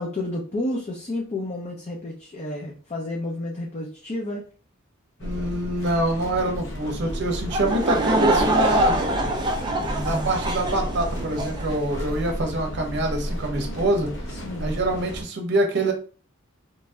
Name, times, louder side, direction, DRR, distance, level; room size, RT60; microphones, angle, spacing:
voice 1, 0.0-4.5 14.3-14.7, left 1 dB, 30° left, -2 dB, 0.5 m, -31 dB
sound 1, 5.2-15.2, equal, 65° left, 0.7 m, -33 dB
voice 2, 5.2-9.0 10.0-14.1 14.6-15.9, right 1 dB, 55° right, 3 dB, 0.7 m, -25 dB
Laughter / Crowd, 7.5-11.7, right 1 dB, 20° right, 0.3 m, -24 dB
3.1 x 2.6 x 2.3 m, 0.38 s
head